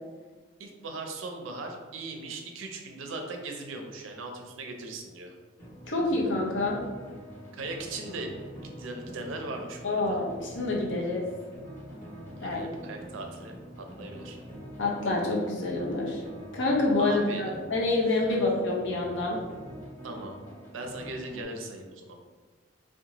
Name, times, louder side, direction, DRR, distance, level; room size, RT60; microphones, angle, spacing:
voice 1, 0.6-5.3 7.6-10.2 11.0-11.1 12.4-14.4 17.0-17.5 18.3-18.4 20.0-20.4 20.7-22.1, right 2 dB, 85° right, 3 dB, 0.4 m, -39 dB
sound 1, 5.6-21.4, equal, 40° left, 1.1 m, -45 dB
voice 2, 5.9-6.8 9.8-11.2 12.4-12.6 14.8-16.2 16.5-19.4, left 2 dB, 65° left, -3 dB, 0.6 m, -27 dB
2.7 x 2.1 x 2.8 m, 1.4 s
head